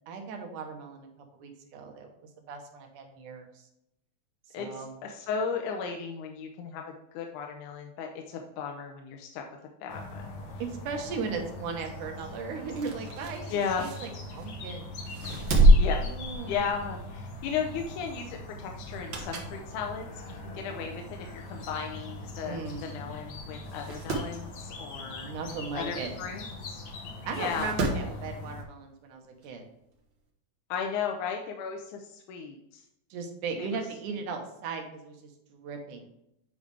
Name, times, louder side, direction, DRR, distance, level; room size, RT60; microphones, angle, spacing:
voice 1, 0.1-2.1 2.5-3.7 4.6-4.9 10.6-14.9 16.0-16.6 22.4-23.0 25.2-26.1 27.3-29.7 33.1-36.1, right 5 dB, 85° right, 3 dB, 2.6 m, -37 dB
voice 2, 4.5-9.5 9.8-10.3 13.5-13.9 15.8-16.0 16.5-25.3 25.7-26.8 27.4-28.0 30.7-32.8 33.6-33.7, left 6 dB, 80° left, 3 dB, 2.2 m, -35 dB
sound 1, 9.9-28.6, left 2 dB, 60° left, 1.4 m, -41 dB
sound 2, 12.6-14.6 15.1-16.9 17.3-17.5 18.8-19.6 20.1-20.2 21.1-21.2 21.4-21.5 21.7-21.8 22.7-22.8 23.2-23.3 23.6-24.3 26.2-26.3 27.3-28.1 29.4-29.5, equal, 55° right, 1.4 m, -26 dB
8.6 x 5.2 x 3.3 m, 0.80 s
omnidirectional pair, 3.5 m